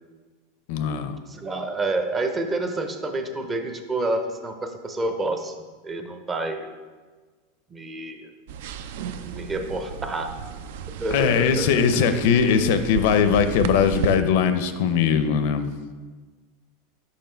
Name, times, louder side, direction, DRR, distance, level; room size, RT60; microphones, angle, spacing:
voice 1, 0.7-1.2 11.1-15.7, left 7 dB, 65° left, 10 dB, 0.5 m, -20 dB
voice 2, 1.3-5.5 5.8-6.7 7.7-8.3 9.0-10.3 11.0-11.7, right 2 dB, 20° right, 6 dB, 0.6 m, -28 dB
sound 1, 8.5-14.2, right 7 dB, 70° right, 0.4 m, -33 dB
5.7 x 4.8 x 4.4 m, 1.4 s
supercardioid pair, 135°, 0 cm